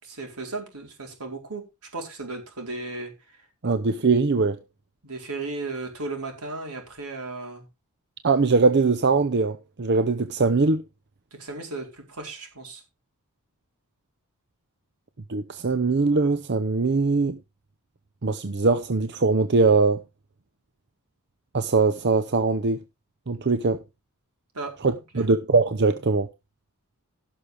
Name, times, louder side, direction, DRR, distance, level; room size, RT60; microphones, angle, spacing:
voice 1, 0.0-1.7 1.9-3.4 3.6-3.7 5.0-7.7 11.3-12.8 24.5-24.8 25.1-25.3, right 3 dB, 80° right, 4.6 m, -35 dB
voice 2, 3.6-4.6 8.2-10.8 15.3-17.4 18.2-20.0 21.5-22.8 23.3-23.8 24.8-26.3, right 4 dB, 50° right, 0.7 m, -21 dB
16.5 x 6.6 x 3.5 m
head